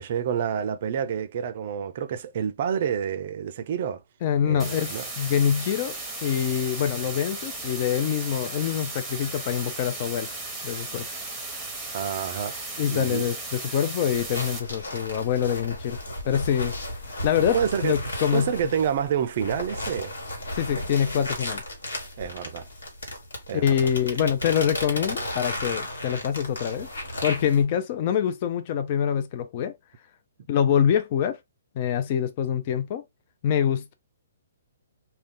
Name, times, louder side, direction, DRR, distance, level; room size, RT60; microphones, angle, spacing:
voice 1, 0.0-4.0 4.4-5.1 11.9-12.6 12.9-13.3 17.5-18.0 18.3-20.1 22.2-22.7 23.5-23.9, right 8 dB, 50° right, 0.4 m, -28 dB
voice 2, 4.2-6.0 6.2-10.3 10.6-11.1 12.8-16.0 16.2-16.8 17.2-18.5 20.5-21.6 23.5-26.9 27.2-29.7 30.5-31.4 31.8-33.0 33.4-33.9, left 9 dB, 40° left, 0.4 m, -25 dB
sound 1, 4.6-14.6, right 2 dB, 5° right, 0.9 m, -36 dB
sound 2, 14.1-27.6, left 1 dB, 75° left, 1.3 m, -34 dB
2.4 x 2.2 x 3.5 m
hypercardioid pair, 135°, 0 cm